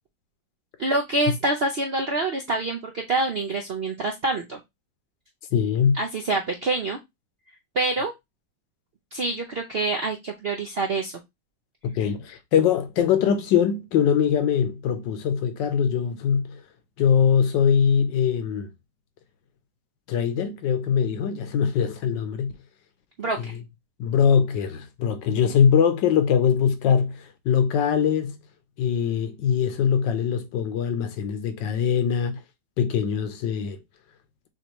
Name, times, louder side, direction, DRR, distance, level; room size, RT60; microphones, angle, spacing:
voice 1, 0.8-4.6 5.9-7.0 7.7-8.1 9.1-11.1 23.2-23.5, right 2 dB, 65° right, 0.6 m, -26 dB
voice 2, 5.5-6.0 11.8-16.6 17.0-18.7 20.1-22.5 23.4-23.5 24.0-28.4 28.8-32.4 32.8-33.8, left 7 dB, 80° left, 1.5 m, -22 dB
6.3 x 2.7 x 3.0 m
omnidirectional pair, 1.9 m